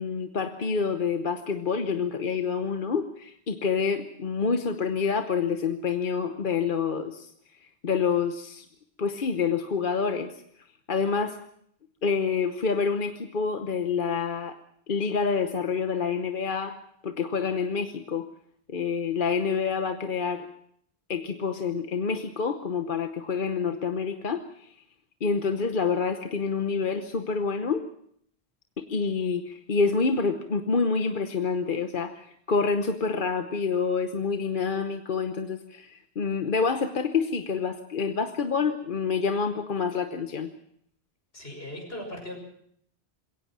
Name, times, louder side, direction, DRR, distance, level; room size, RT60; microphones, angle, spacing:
voice 1, 0.0-7.3 7.6-8.7 9.0-10.4 10.9-11.4 12.0-14.6 14.9-16.7 17.0-18.3 18.7-20.5 21.1-24.7 25.2-27.8 28.8-40.5, left 5 dB, 55° left, 7 dB, 1.1 m, -27 dB
voice 2, 41.3-42.4, left 1 dB, 70° left, 3 dB, 6.2 m, -38 dB
21.5 x 17.5 x 7.4 m, 0.69 s
omnidirectional pair, 1.1 m